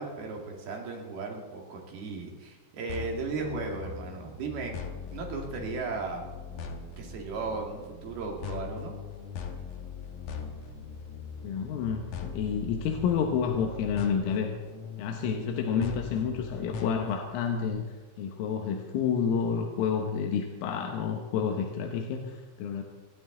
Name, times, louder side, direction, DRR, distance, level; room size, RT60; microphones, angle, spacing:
voice 1, 0.0-4.7 5.1-6.2 7.0-8.9, right 4 dB, 55° right, 1 dB, 3.8 m, -36 dB
sound 1, 2.9-17.7, left 6 dB, 70° left, 1.9 m, -41 dB
voice 2, 11.4-14.5 15.0-22.8, left 6 dB, 90° left, 3 dB, 3.8 m, -29 dB
25.5 x 11.0 x 3.9 m, 1.3 s
omnidirectional pair, 5.7 m